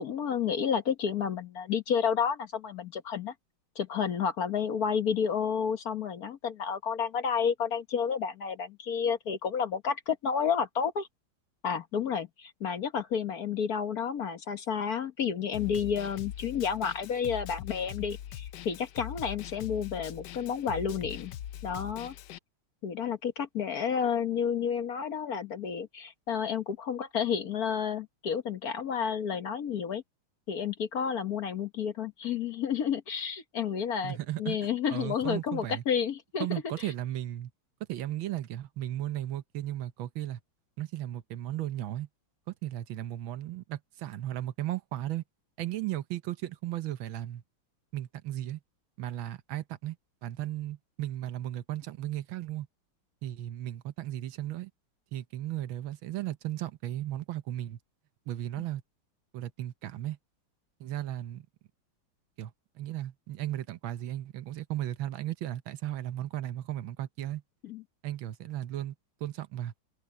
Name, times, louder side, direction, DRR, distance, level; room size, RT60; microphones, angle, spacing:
voice 1, 0.0-3.3 3.7-11.1 11.6-21.3 21.6-22.1 22.8-30.0 30.5-36.5 36.8-36.9 67.6-67.8, left 7 dB, 50° left, 1.5 m, -31 dB
Snare drum, 15.5-22.4, left 11 dB, 65° left, 1.1 m, -42 dB
voice 2, 34.0-35.8 36.4-37.5 37.9-40.4 40.8-42.1 42.6-45.2 45.6-47.4 47.9-48.6 49.0-50.0 50.2-52.7 53.2-54.7 55.1-57.8 58.3-58.8 59.3-60.2 60.8-61.5 62.4-67.4 68.0-68.9 69.2-69.7, right 13 dB, 75° right, 1.6 m, -35 dB
omnidirectional pair, 2.2 m